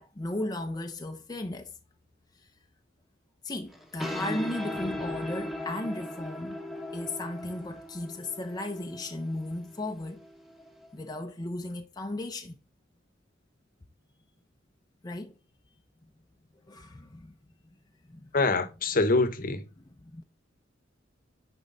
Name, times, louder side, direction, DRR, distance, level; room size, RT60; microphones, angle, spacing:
voice 1, 0.0-1.7 3.4-6.6 6.9-10.2 10.9-12.6 15.0-15.3 16.7-17.3 18.1-18.3 20.0-20.2, left 1 dB, 20° left, 0.6 m, -35 dB
sound 1, 3.7-10.9, left 1 dB, ahead, 1.2 m, -38 dB
voice 2, 18.3-19.7, left 3 dB, 50° left, 1.0 m, -25 dB
10.5 x 4.6 x 3.8 m
head